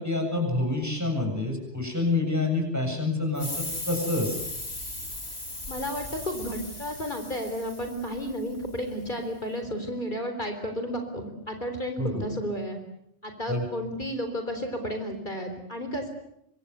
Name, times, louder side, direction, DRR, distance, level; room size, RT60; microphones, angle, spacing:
voice 1, 0.0-4.4 12.0-12.2 13.5-13.6, left 2 dB, 15° right, 3 dB, 7.8 m, -27 dB
sound 1, 3.3-8.7, left 1 dB, 65° left, 5.5 m, -37 dB
voice 2, 5.7-12.8 13.2-16.1, equal, 45° left, 5 dB, 4.1 m, -32 dB
26.0 x 25.0 x 8.1 m, 0.78 s
omnidirectional pair, 1.1 m